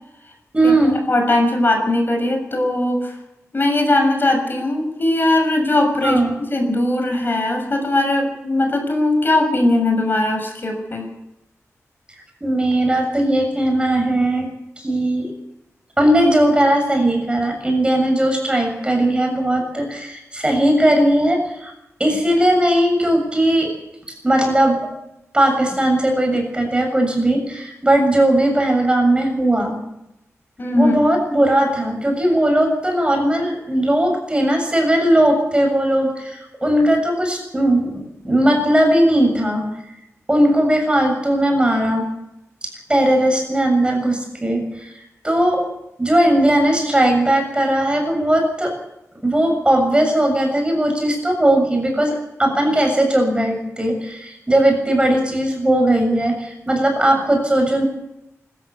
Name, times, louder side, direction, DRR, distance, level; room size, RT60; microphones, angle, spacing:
voice 1, 0.5-1.0 6.0-6.3 12.4-14.5 14.8-15.3 16.0-21.7 22.0-23.7 24.1-24.8 25.3-29.8 30.7-39.6 40.3-42.0 42.6-45.6 46.0-48.7 49.2-57.8, right 1 dB, 20° right, 3 dB, 7.1 m, -18 dB
voice 2, 1.1-3.1 3.5-6.2 6.5-11.1 30.6-30.9, left 1 dB, 40° left, 4 dB, 6.3 m, -19 dB
25.5 x 14.0 x 8.4 m, 0.88 s
wide cardioid pair, 110°, 5 cm